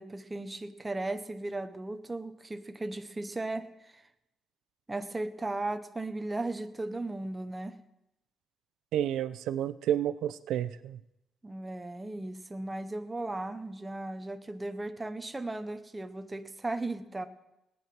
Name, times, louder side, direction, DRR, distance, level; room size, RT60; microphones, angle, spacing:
voice 1, 0.0-4.0 4.9-7.8 11.4-17.3, right 2 dB, 10° right, 8 dB, 0.8 m, -36 dB
voice 2, 8.9-11.0, right 11 dB, 90° right, 13 dB, 0.6 m, -30 dB
18.5 x 9.5 x 6.0 m, 0.90 s
cardioid pair, 165°, 0 cm